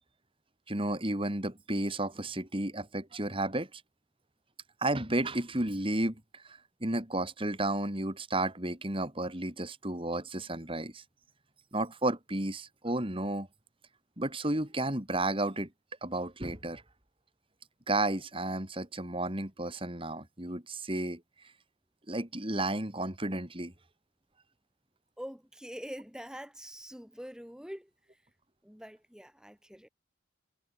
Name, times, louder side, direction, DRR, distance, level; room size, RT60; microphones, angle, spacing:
voice 1, 0.7-3.8 4.8-11.0 11.7-13.5 14.2-15.7 16.0-16.8 17.9-21.2 22.1-23.7, right 1 dB, 25° right, 3.1 m, -32 dB
voice 2, 25.2-27.9 28.6-29.9, equal, 5° right, 4.7 m, -44 dB
head